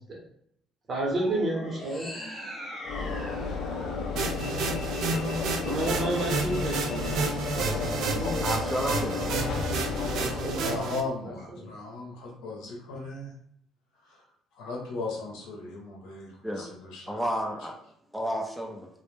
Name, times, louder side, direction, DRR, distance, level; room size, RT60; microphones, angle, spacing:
voice 1, 0.9-2.1 5.6-8.5 10.2-10.8 11.6-11.7, right 1 dB, 40° right, -2 dB, 0.9 m, -31 dB
sound 1, 1.0-5.4, left 1 dB, 25° left, 0.7 m, -42 dB
Train / Engine / Alarm, 2.8-11.1, left 4 dB, 65° left, 0.4 m, -32 dB
sound 2, 4.2-11.0, right 4 dB, 70° right, 0.3 m, -31 dB
voice 2, 8.4-9.3 16.4-16.7 17.1-17.7 18.1-18.9, equal, 5° right, 1 dB, 0.4 m, -31 dB
voice 3, 10.3-13.3 14.0-17.2, left 3 dB, 80° left, -1 dB, 0.7 m, -37 dB
2.1 x 2.1 x 3.1 m, 0.70 s
cardioid pair, 115°, 0 cm